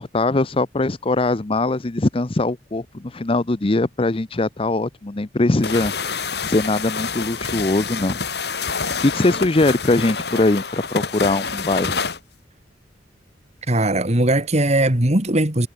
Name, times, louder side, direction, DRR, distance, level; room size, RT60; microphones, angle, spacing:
voice 1, 0.0-6.2 6.5-8.2 8.8-12.0, left 2 dB, 30° left, 0.7 m, -21 dB
sound 1, 5.6-12.2, left 5 dB, 65° left, 5.1 m, -27 dB
voice 2, 13.7-15.7, right 1 dB, 40° right, 2.6 m, -19 dB
head